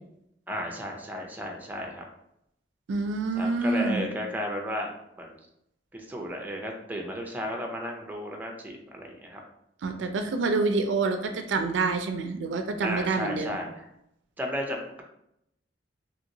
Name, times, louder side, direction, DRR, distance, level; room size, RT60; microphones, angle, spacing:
voice 1, 0.5-2.0 3.4-4.9 5.2-5.3 5.9-9.4 12.8-13.9 14.4-15.0, equal, 10° right, 1 dB, 0.4 m, -34 dB
voice 2, 2.9-4.1 9.8-13.6, right 3 dB, 80° right, 6 dB, 0.4 m, -27 dB
2.8 x 2.8 x 2.6 m, 0.78 s
head